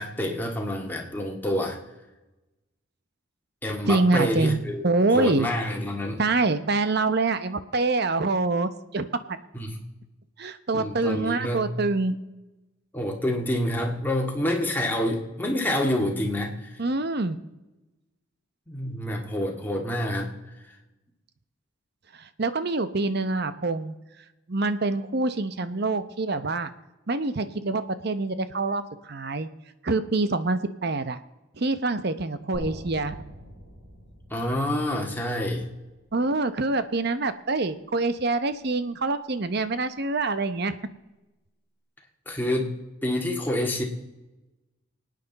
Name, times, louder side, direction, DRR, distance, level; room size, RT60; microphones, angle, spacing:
voice 1, 0.0-1.8 3.6-4.8 5.1-6.2 9.5-9.8 10.7-11.7 12.9-16.8 18.7-20.4 34.3-35.7 42.3-42.8 43.0-43.8, left 1 dB, 10° left, 0 dB, 1.9 m, -27 dB
voice 2, 3.9-5.5 6.2-9.1 10.4-12.2 16.8-17.4 22.2-23.9 24.5-26.7 27.1-29.5 29.8-31.2 31.6-33.2 36.1-40.7, right 3 dB, 50° right, 12 dB, 0.8 m, -25 dB
sound 1, 32.5-36.6, equal, 75° right, 6.8 m, -44 dB
25.5 x 9.3 x 4.1 m, 1.1 s
head